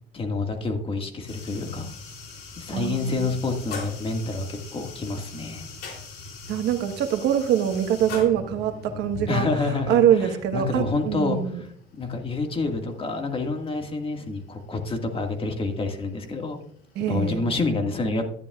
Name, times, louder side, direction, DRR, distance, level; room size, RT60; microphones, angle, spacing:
voice 1, 0.1-1.9 2.6-5.6 9.3-11.7 11.9-16.6 17.1-18.3, left 3 dB, 30° left, 4 dB, 1.8 m, -28 dB
sound 1, 1.3-17.3, left 3 dB, 75° left, 3.3 m, -42 dB
voice 2, 2.7-3.3 6.5-9.5 9.9-11.6 16.9-17.5, right 9 dB, 85° right, 6 dB, 1.3 m, -24 dB
12.5 x 10.5 x 2.4 m, 0.64 s
cardioid pair, 110°, 17 cm